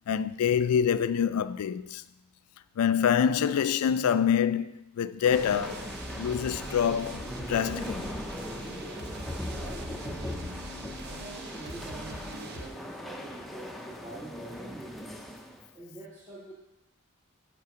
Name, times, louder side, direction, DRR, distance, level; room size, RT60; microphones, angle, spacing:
voice 1, 0.1-2.0 2.8-5.9 6.2-8.2, left 8 dB, 85° left, 0.3 m, -26 dB
Organ in church, 5.2-15.7, equal, ahead, 0.5 m, -40 dB
sound 1, 5.3-12.7, right 1 dB, 50° right, 0.7 m, -42 dB
voice 2, 8.8-9.1 9.4-10.5 11.0-15.0 15.7-16.5, right 2 dB, 20° right, 1.3 m, -46 dB
6.7 x 5.5 x 5.1 m
head